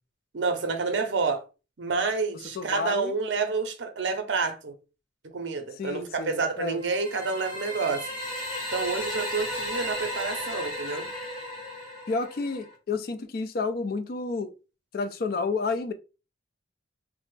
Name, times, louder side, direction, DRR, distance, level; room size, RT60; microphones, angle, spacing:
voice 1, 0.3-1.4 1.8-4.7 5.2-8.0 8.7-11.0, right 4 dB, 65° right, 0.6 m, -29 dB
voice 2, 2.6-3.1 5.8-6.8 12.1-14.5 14.9-15.9, left 4 dB, 50° left, 0.4 m, -30 dB
sound 1, 6.8-12.7, left 1 dB, 25° left, 0.9 m, -35 dB
3.2 x 2.0 x 3.1 m
head